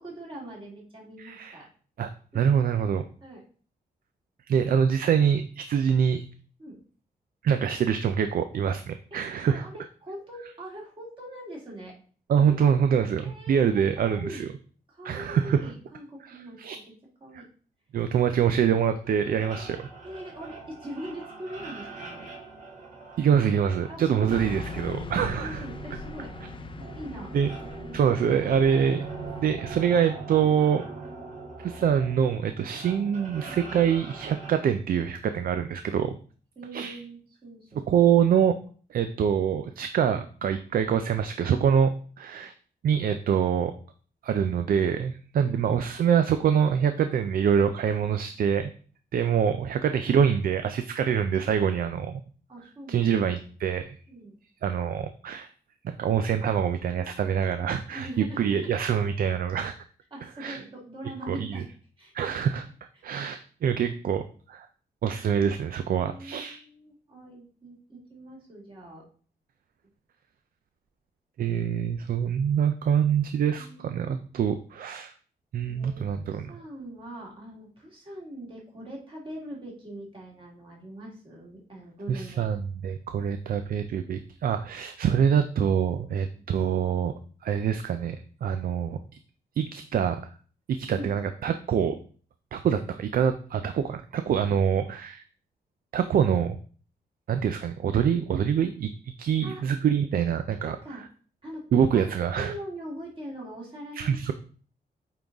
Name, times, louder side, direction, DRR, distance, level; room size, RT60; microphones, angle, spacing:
voice 1, 0.0-1.7 3.2-3.4 6.6-6.8 9.5-11.9 12.4-12.9 13.2-13.6 14.0-14.5 14.9-16.9 17.2-17.5 20.0-22.3 23.9-24.4 25.1-26.3 26.7-27.3 27.6-28.0 33.5-33.6 36.6-37.7 37.9-38.1 45.4-45.8 52.5-53.2 54.1-54.4 57.9-58.7 60.1-61.7 62.0-62.4 66.0-69.0 73.4-74.1 75.7-82.5 86.3-86.5 90.9-91.1 97.7-97.8 99.4-99.6 100.6-101.0 101.4-101.6 101.9-104.3, right 1 dB, 35° right, -3 dB, 2.2 m, -42 dB
voice 2, 1.2-1.6 2.0-2.1 2.3-3.0 4.5-6.2 7.4-9.6 12.3-14.5 15.0-15.6 16.3-16.8 17.3-17.4 17.9-19.9 23.2-25.6 27.3-27.5 27.9-29.1 29.4-30.8 31.6-36.1 36.7-37.0 37.9-38.5 38.9-42.5 42.8-43.7 44.2-48.7 49.1-52.2 52.9-53.9 54.6-55.5 55.8-59.7 60.4-60.6 61.3-61.6 62.1-62.7 63.0-64.7 65.0-66.6 71.4-75.1 75.5-76.5 82.1-87.1 87.4-89.0 89.6-90.2 90.7-92.0 92.5-95.2 95.9-96.6 97.3-100.8 101.7-102.5 104.0-104.3, right 8 dB, 65° right, 9 dB, 0.5 m, -25 dB
sound 1, 19.0-34.5, right 4 dB, 50° right, 2.1 m, -42 dB
Car passing by / Truck, 24.3-29.8, left 4 dB, 30° left, 0.5 m, -41 dB
8.7 x 3.9 x 3.5 m, 0.43 s
wide cardioid pair, 160°, 16 cm